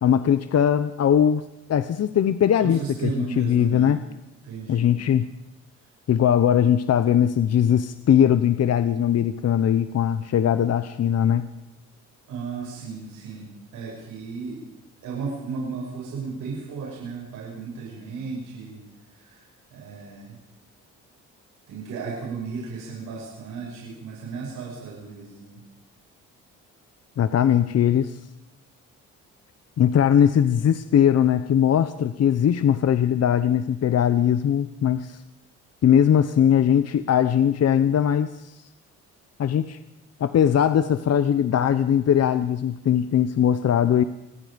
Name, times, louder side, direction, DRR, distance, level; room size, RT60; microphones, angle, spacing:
voice 1, 0.0-1.4 1.7-4.0 4.7-5.3 6.1-11.5 27.2-28.2 29.8-35.2 35.8-38.5 39.4-39.8 40.2-44.0, left 9 dB, 55° left, 11 dB, 1.0 m, -20 dB
voice 2, 2.6-4.0 4.4-4.9 12.3-13.5 13.7-14.6 15.0-18.8 19.2-19.4 19.7-20.3 21.7-25.6, right 5 dB, 90° right, -3 dB, 7.3 m, -34 dB
27.5 x 20.0 x 5.3 m, 0.86 s
cardioid pair, 90°, 30 cm